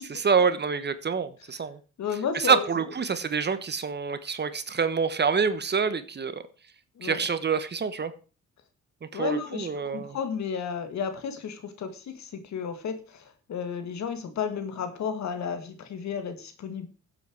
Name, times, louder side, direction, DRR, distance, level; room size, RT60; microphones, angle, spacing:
voice 1, 0.1-1.8 2.3-6.4 7.0-8.1 9.0-10.2, right 5 dB, 35° right, 12 dB, 1.2 m, -26 dB
voice 2, 2.0-2.6 7.0-7.2 9.1-13.2 13.5-16.9, left 6 dB, 65° left, 8 dB, 2.2 m, -32 dB
15.0 x 8.0 x 4.8 m, 0.35 s
cardioid pair, 90°, 30 cm